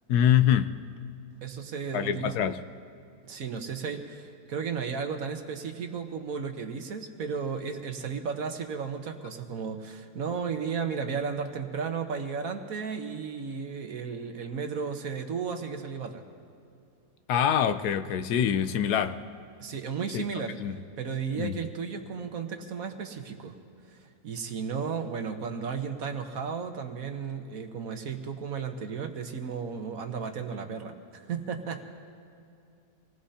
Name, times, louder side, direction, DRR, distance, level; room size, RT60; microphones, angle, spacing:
voice 1, 0.1-0.7 1.9-2.6 17.3-19.2 20.1-20.2 20.6-20.8 21.4-21.5, left 9 dB, 75° left, 10 dB, 1.2 m, -24 dB
voice 2, 1.4-2.4 3.3-16.2 19.6-23.5 23.9-24.0 24.2-31.8, right 6 dB, 60° right, 5 dB, 1.5 m, -34 dB
27.0 x 19.0 x 2.8 m, 2.6 s
omnidirectional pair, 1.7 m